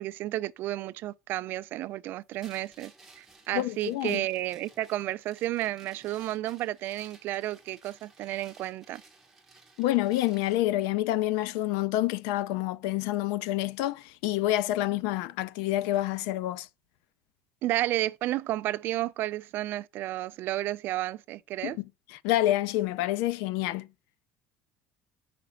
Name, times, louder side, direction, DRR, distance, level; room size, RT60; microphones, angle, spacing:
voice 1, 0.0-9.0 17.6-21.8, right 15 dB, 45° right, 0.3 m, -32 dB
sound 1, 2.4-10.7, right 3 dB, 5° right, 1.1 m, -57 dB
voice 2, 3.5-4.2 9.8-16.7 21.6-21.7 22.1-23.9, left 15 dB, 85° left, 0.4 m, -28 dB
5.1 x 4.9 x 5.7 m
cardioid pair, 175°, 5 cm